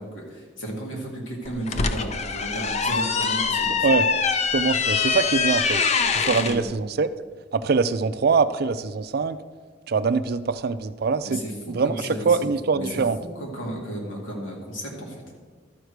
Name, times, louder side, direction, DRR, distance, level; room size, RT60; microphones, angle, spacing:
voice 1, 0.0-3.9 6.2-6.7 11.2-12.4 12.7-15.2, right 1 dB, 90° left, -1 dB, 2.3 m, -34 dB
sound 1, 1.4-6.6, left 5 dB, 35° left, 0.5 m, -24 dB
voice 2, 4.5-5.8 6.1-7.1 7.5-9.4 9.9-11.4 11.7-13.2, right 4 dB, 55° right, 13 dB, 0.4 m, -23 dB
12.0 x 4.7 x 6.5 m, 1.5 s
head